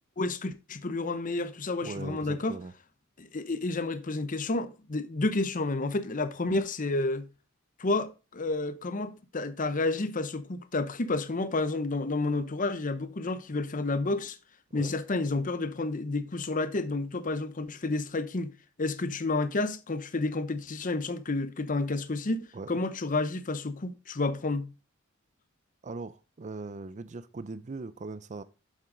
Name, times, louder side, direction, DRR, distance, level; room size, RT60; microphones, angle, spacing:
voice 1, 0.2-2.6 3.2-7.3 7.8-14.4 14.7-18.5 18.8-24.7, left 2 dB, 40° left, 0.8 m, -30 dB
voice 2, 1.8-2.7 14.7-15.0 22.5-22.7 25.8-28.4, right 3 dB, 35° right, 0.5 m, -40 dB
7.5 x 7.3 x 3.9 m
head